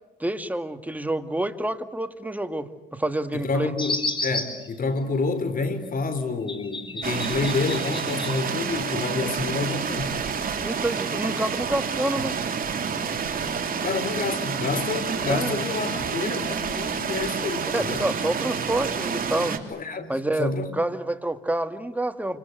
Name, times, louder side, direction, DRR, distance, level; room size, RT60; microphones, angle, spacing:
voice 1, 0.2-3.7 10.6-12.4 15.3-15.5 17.7-19.6 20.1-22.4, right 1 dB, 10° right, 2.0 m, -28 dB
voice 2, 3.3-10.2 13.8-18.0 19.7-20.1 20.4-20.7, left 4 dB, 45° left, 3.8 m, -28 dB
sound 1, 3.8-4.7 6.5-8.9 9.2-10.4, left 2 dB, 25° left, 4.7 m, -32 dB
sound 2, 7.0-19.6, right 6 dB, 45° right, 3.2 m, -29 dB
28.0 x 26.0 x 8.0 m
cardioid pair, 90°, 20 cm